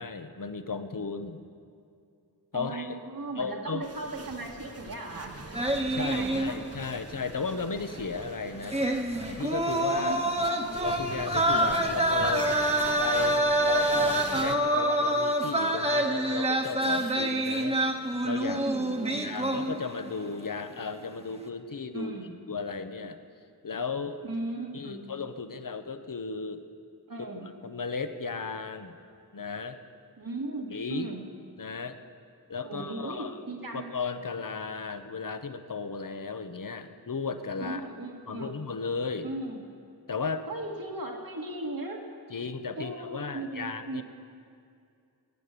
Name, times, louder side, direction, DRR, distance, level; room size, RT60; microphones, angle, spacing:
voice 1, 0.0-1.4 2.5-3.0 3.4-3.9 5.9-8.8 9.3-10.1 10.8-17.8 18.2-18.6 19.1-22.1 22.5-23.2 23.6-24.2 24.7-26.6 27.2-27.3 27.6-29.0 29.3-29.8 30.7-31.1 31.6-32.0 32.5-33.4 33.7-37.9 38.3-39.3 40.1-40.5 42.3-44.0, left 4 dB, 60° left, 9 dB, 1.0 m, -35 dB
voice 2, 2.5-5.3 6.0-6.6 10.0-11.0 11.5-12.0 18.5-19.6 21.9-22.3 24.2-25.1 27.1-27.5 30.2-31.2 32.6-33.9 37.6-38.6 39.2-39.6 40.5-42.0 42.8-44.0, right 2 dB, 65° right, 1 dB, 2.1 m, -37 dB
sound 1, 3.8-14.6, right 2 dB, 40° right, 1.1 m, -41 dB
sound 2, 5.5-6.9 7.2-7.3 8.6-20.1 20.4-20.7, right 1 dB, 15° right, 1.2 m, -27 dB
21.5 x 9.6 x 6.8 m, 2.4 s
wide cardioid pair, 60°, 38 cm